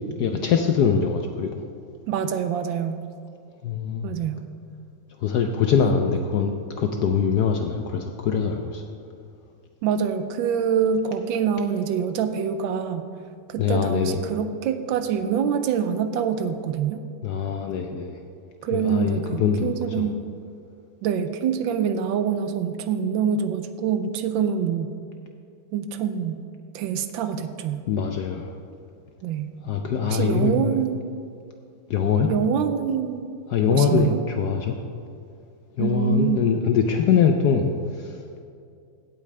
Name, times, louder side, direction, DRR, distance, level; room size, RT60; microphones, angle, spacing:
voice 1, 0.2-1.5 3.6-4.1 5.2-6.5 6.8-8.8 13.6-14.2 17.2-18.1 18.7-20.1 27.9-28.5 29.6-30.5 31.9-32.3 33.5-34.8 35.8-37.7 38.0-38.2, left 6 dB, 70° left, 4 dB, 1.0 m, -23 dB
voice 2, 2.1-3.0 4.0-4.5 5.8-5.9 9.8-13.0 13.5-17.0 18.6-20.2 21.0-24.9 25.7-26.4 26.7-27.8 29.2-29.5 30.1-31.0 32.2-33.3 33.7-34.2 35.8-36.5, right 7 dB, 75° right, 10 dB, 1.3 m, -25 dB
16.0 x 8.5 x 3.3 m, 2.4 s
omnidirectional pair, 2.2 m